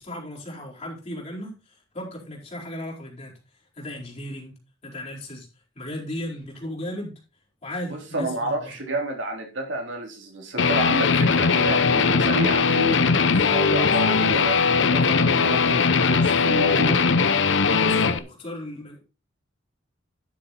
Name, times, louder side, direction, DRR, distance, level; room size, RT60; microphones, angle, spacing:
voice 1, 0.0-3.4 3.8-4.5 4.8-5.5 5.7-7.1 7.6-8.7 13.9-14.3 17.7-19.0, left 1 dB, 35° left, 4.5 m, -35 dB
voice 2, 7.9-17.0, right 1 dB, 70° right, 3.4 m, -30 dB
Guitar, 10.6-18.2, left 5 dB, 65° left, 0.8 m, -20 dB
11.5 x 6.9 x 4.3 m
head